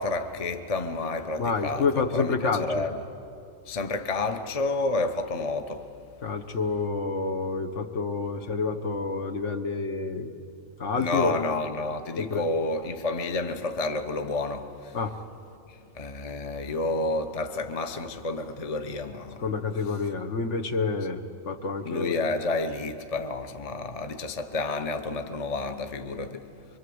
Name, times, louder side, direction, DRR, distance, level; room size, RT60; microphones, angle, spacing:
voice 1, 0.0-3.0 3.7-5.9 11.0-15.0 15.9-19.4 21.8-26.5, left 3 dB, 30° left, 0.9 m, -30 dB
voice 2, 1.4-2.9 6.2-10.3 10.8-11.4 12.2-12.4 14.9-15.1 19.4-22.2, left 4 dB, 65° left, 1.4 m, -28 dB
25.0 x 24.0 x 7.9 m
omnidirectional pair, 1.4 m